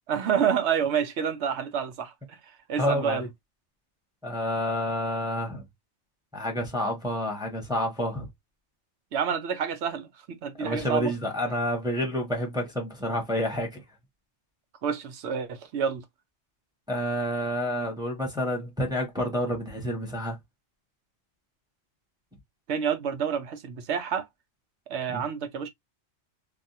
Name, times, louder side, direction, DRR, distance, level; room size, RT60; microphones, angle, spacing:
voice 1, 0.1-2.1 2.7-3.2 9.1-10.1 10.4-11.1 14.8-16.0 22.7-24.3 24.9-25.7, right 7 dB, 80° right, 1.0 m, -28 dB
voice 2, 2.8-3.3 4.2-5.6 6.3-8.3 10.5-13.8 16.9-20.4 25.1-25.2, left 1 dB, 5° right, 1.1 m, -29 dB
3.4 x 2.5 x 2.7 m
omnidirectional pair, 1.1 m